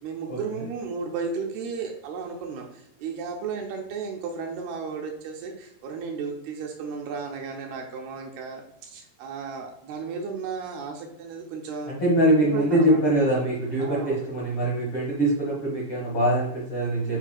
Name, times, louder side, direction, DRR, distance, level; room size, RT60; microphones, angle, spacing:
voice 1, 0.0-11.9 12.5-13.0 13.8-14.3, right 5 dB, 75° right, 2 dB, 2.6 m, -34 dB
voice 2, 11.9-17.2, right 1 dB, 75° left, -5 dB, 1.2 m, -23 dB
8.9 x 4.6 x 2.3 m, 0.77 s
omnidirectional pair, 4.9 m